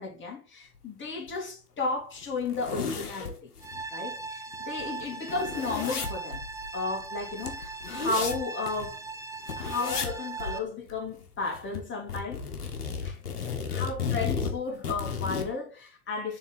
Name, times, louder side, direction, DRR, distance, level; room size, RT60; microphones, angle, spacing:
voice 1, 0.0-3.5 3.9-6.4 6.7-9.0 9.6-12.4 13.0-13.2 13.4-16.4, left 3 dB, 25° left, 2.5 m, -33 dB
sound 1, 1.3-1.4 1.8-1.9 2.2-3.8 4.2-4.3 4.5-8.9 9.5-10.1 10.4-10.6 10.9-11.8 12.1-15.5, left 6 dB, 85° left, 1.3 m, -34 dB
sound 2, 3.6-10.6, right 4 dB, 5° right, 0.7 m, -39 dB
7.0 x 3.8 x 4.0 m
figure-of-eight pair, 80°, 45 cm